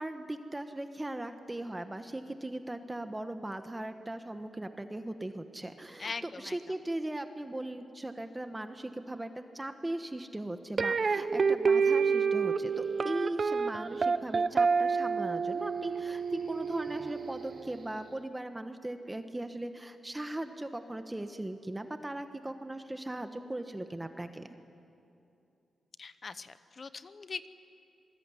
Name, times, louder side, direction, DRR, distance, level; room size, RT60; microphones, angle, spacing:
voice 1, 0.0-24.5, right 1 dB, 10° right, 7 dB, 1.1 m, -38 dB
voice 2, 6.0-6.6 26.0-27.5, left 4 dB, 40° left, 13 dB, 0.9 m, -41 dB
sound 1, 10.8-17.9, right 5 dB, 40° right, 0.7 m, -29 dB
27.5 x 20.5 x 9.8 m, 2.7 s
wide cardioid pair, 140°, 0 cm